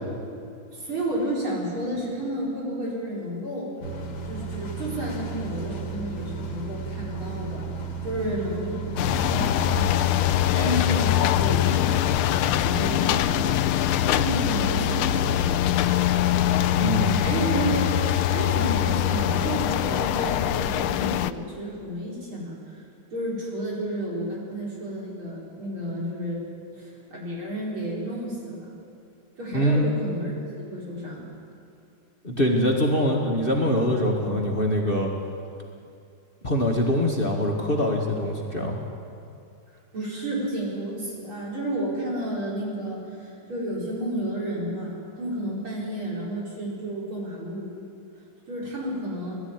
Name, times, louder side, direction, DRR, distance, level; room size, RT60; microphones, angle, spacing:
voice 1, 0.7-3.7 4.3-7.7 8.0-13.6 14.1-15.7 16.5-22.8 23.1-26.5 26.7-28.7 29.4-30.4 30.7-31.3 39.9-47.7 48.5-49.4, right 1 dB, 75° right, -5 dB, 5.6 m, -31 dB
sound 1, 3.8-9.9, right 4 dB, 55° left, 2.1 m, -34 dB
sound 2, 9.0-21.3, left 11 dB, 85° left, 1.5 m, -23 dB
voice 2, 16.8-17.2 29.5-29.9 32.2-35.1 36.4-38.8, equal, 25° left, -1 dB, 1.9 m, -23 dB
20.5 x 13.0 x 9.6 m, 2.5 s
omnidirectional pair, 2.3 m